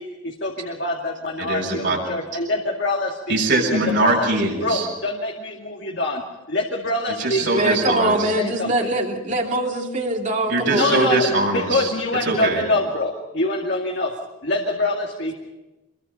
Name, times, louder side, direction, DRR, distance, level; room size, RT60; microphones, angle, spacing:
voice 1, 0.0-3.4 3.7-4.3 4.6-6.2 6.5-8.1 8.4-8.9 10.6-14.1 14.4-15.3, left 2 dB, 55° left, 0 dB, 2.3 m, -25 dB
voice 2, 1.4-2.0 3.3-4.9 7.2-8.3 10.5-11.9 12.2-12.6, right 2 dB, 65° right, -3 dB, 6.6 m, -22 dB
voice 3, 7.5-11.1, right 1 dB, 35° right, 1 dB, 2.5 m, -23 dB
27.0 x 22.0 x 5.5 m, 1.0 s
head